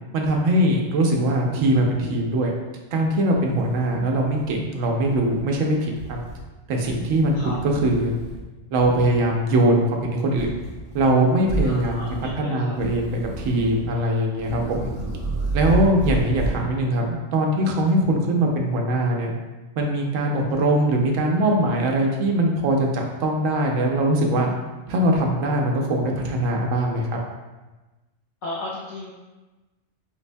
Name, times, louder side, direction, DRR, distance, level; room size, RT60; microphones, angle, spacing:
voice 1, 0.1-2.5 2.9-6.2 6.7-7.4 7.6-8.1 8.7-10.5 10.9-14.9 15.5-19.3 19.8-24.5 24.9-27.1, right 1 dB, 80° right, 1 dB, 0.9 m, -21 dB
sound 1, 3.0-3.1 3.5-4.6 5.0-5.4 5.9-6.5 6.8-8.4 8.7-9.2 10.3-11.1 11.4-12.4 12.7-13.9 14.3-16.7, right 3 dB, 25° right, 0.7 m, -31 dB
voice 2, 11.6-12.8 28.4-29.1, left 2 dB, 60° left, -7 dB, 0.5 m, -35 dB
4.5 x 2.1 x 2.5 m, 1.2 s
omnidirectional pair, 1.3 m